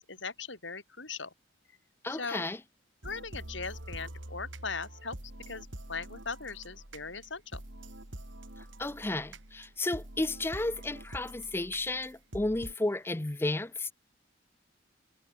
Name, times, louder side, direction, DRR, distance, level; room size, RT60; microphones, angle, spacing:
voice 1, 0.0-1.3 2.1-2.5 3.0-5.2 5.5-7.6, left 4 dB, 80° left, 6.9 m, -39 dB
voice 2, 2.0-2.6 8.6-13.9, left 2 dB, 10° left, 0.5 m, -33 dB
sound 1, 3.0-12.7, right 1 dB, 85° right, 3.8 m, -46 dB
head